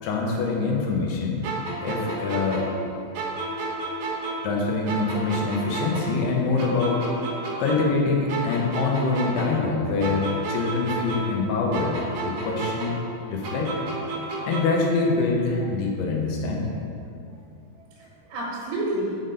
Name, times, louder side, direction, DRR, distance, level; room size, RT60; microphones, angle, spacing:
voice 1, 0.0-1.4 1.8-2.7 4.4-7.0 7.6-13.0 13.3-13.7 14.5-16.8, left 3 dB, 75° left, -1 dB, 2.5 m, -25 dB
sound 1, 1.4-4.6 4.9-8.0 8.3-11.5 11.7-14.9, right 2 dB, 70° right, 3.0 m, -32 dB
voice 2, 17.8-19.2, right 1 dB, 85° right, -5 dB, 3.8 m, -31 dB
6.7 x 5.8 x 5.2 m, 2.5 s
omnidirectional pair, 5.4 m